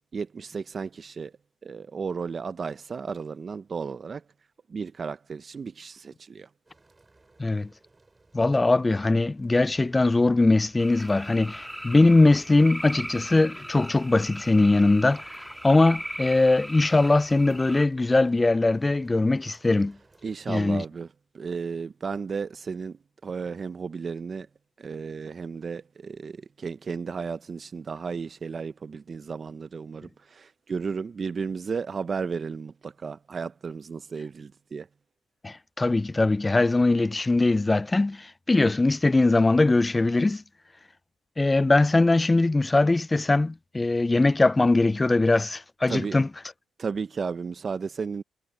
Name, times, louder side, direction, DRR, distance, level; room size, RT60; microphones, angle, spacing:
voice 1, 0.1-1.3 1.6-4.2 4.7-6.5 20.2-21.1 21.3-24.5 24.8-34.9 45.9-46.2 46.8-48.2, right 5 dB, 40° right, 0.5 m, -34 dB
sound 1, 6.6-20.7, right 3 dB, 20° right, 6.4 m, -59 dB
voice 2, 8.3-15.3 15.6-20.0 20.5-20.8 35.4-40.4 41.4-46.3, left 2 dB, 20° left, 0.3 m, -21 dB
sound 2, 10.8-17.9, equal, ahead, 2.6 m, -39 dB
cardioid pair, 90°, 0 cm